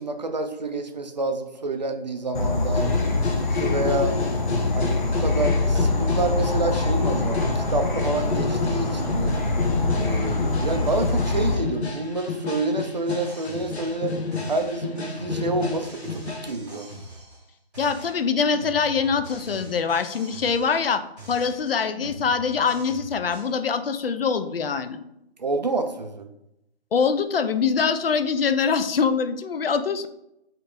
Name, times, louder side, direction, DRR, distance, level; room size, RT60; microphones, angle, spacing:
voice 1, 0.0-3.0 3.6-4.2 4.7-9.4 10.0-14.2 14.5-16.9 25.4-26.3, right 2 dB, 45° right, 7 dB, 0.4 m, -28 dB
Insect / Frog, 2.3-11.5, left 3 dB, 50° left, 0.8 m, -24 dB
sound 1, 2.7-16.5, left 4 dB, 90° left, 0.8 m, -31 dB
sound 2, 13.0-14.1 14.3-17.5 17.7-20.9 21.2-23.6, right 1 dB, ahead, 0.7 m, -43 dB
voice 2, 17.8-25.0 26.9-30.1, left 5 dB, 65° left, 11 dB, 0.4 m, -24 dB
3.7 x 2.9 x 3.3 m, 0.82 s
figure-of-eight pair, 155°, 32 cm